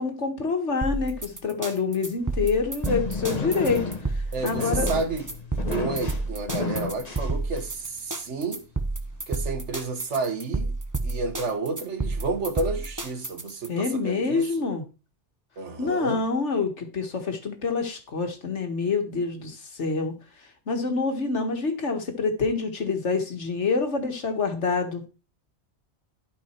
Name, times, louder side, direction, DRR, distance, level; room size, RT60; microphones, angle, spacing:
voice 1, 0.0-3.8 4.4-4.9 6.6-6.8 13.7-14.8 15.8-20.1 20.7-25.1, left 4 dB, 85° left, 2.0 m, -27 dB
sound 1, 0.8-13.7, right 3 dB, 15° right, 1.0 m, -30 dB
sound 2, 2.2-7.9, left 4 dB, 35° left, 1.5 m, -32 dB
voice 2, 4.3-8.6 9.3-10.7 11.0-14.5 15.6-16.2, right 3 dB, 85° right, 1.7 m, -31 dB
12.0 x 5.4 x 4.5 m
omnidirectional pair, 1.2 m